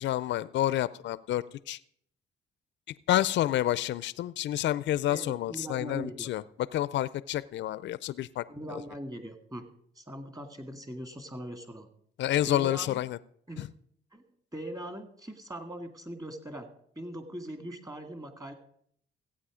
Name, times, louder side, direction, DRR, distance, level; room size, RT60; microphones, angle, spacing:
voice 1, 0.0-1.8 3.1-6.4 6.7-8.4 12.2-13.2 13.6-13.7, left 13 dB, 65° left, 17 dB, 0.4 m, -29 dB
voice 2, 5.1-6.3 8.5-9.6 10.0-11.9 12.5-13.0 13.5-13.6 14.1-14.2 14.5-16.7 17.0-18.5, right 1 dB, 15° right, 8 dB, 1.9 m, -40 dB
15.5 x 8.7 x 5.0 m, 0.66 s
cardioid pair, 90°, 20 cm